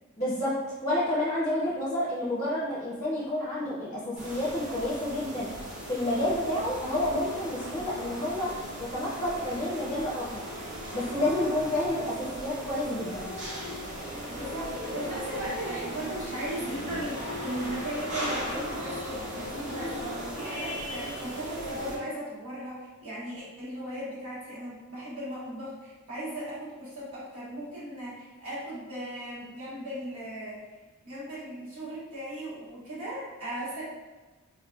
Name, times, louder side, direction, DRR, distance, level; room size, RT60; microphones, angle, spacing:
voice 1, 0.2-0.5 0.8-5.5 5.9-8.5 8.9-10.4 10.9-13.3, left 1 dB, 35° left, -8 dB, 0.7 m, -29 dB
sound 1, 4.2-22.0, equal, 35° right, 0.7 m, -37 dB
voice 2, 14.3-30.6 31.0-33.8, right 1 dB, 90° right, -9 dB, 1.5 m, -37 dB
3.9 x 2.3 x 2.2 m, 1.2 s
head